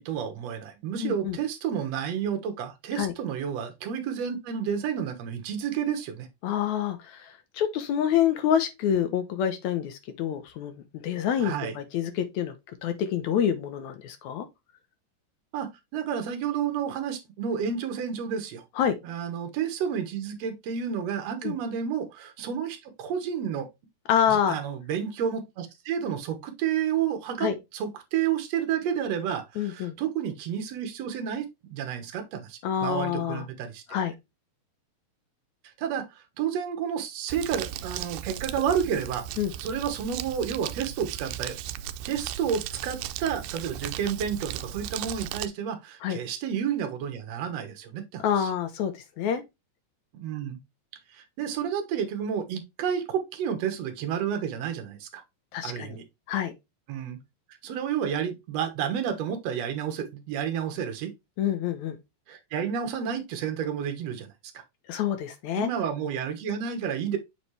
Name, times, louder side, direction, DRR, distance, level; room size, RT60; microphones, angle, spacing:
voice 1, 0.0-6.3 11.4-11.8 15.5-18.6 19.0-23.7 24.3-33.8 35.8-39.3 39.6-41.6 42.1-48.5 50.1-50.6 51.1-55.2 55.6-56.1 56.9-57.2 57.6-61.1 62.3-64.6 65.5-67.2, right 8 dB, 60° right, 2.1 m, -30 dB
voice 2, 1.0-1.4 3.0-3.1 6.4-10.7 11.0-12.5 12.8-14.5 18.8-19.0 21.4-21.5 24.1-24.6 27.4-27.5 29.6-30.0 32.6-33.4 33.9-34.1 39.4-39.5 46.0-46.2 48.2-49.4 55.5-56.0 56.3-56.5 61.4-62.0 64.9-65.7, left 9 dB, 70° left, 1.9 m, -27 dB
Crumpling crinkling, 37.3-45.5, right 11 dB, 90° right, 2.2 m, -36 dB
7.3 x 4.2 x 3.1 m
omnidirectional pair, 3.8 m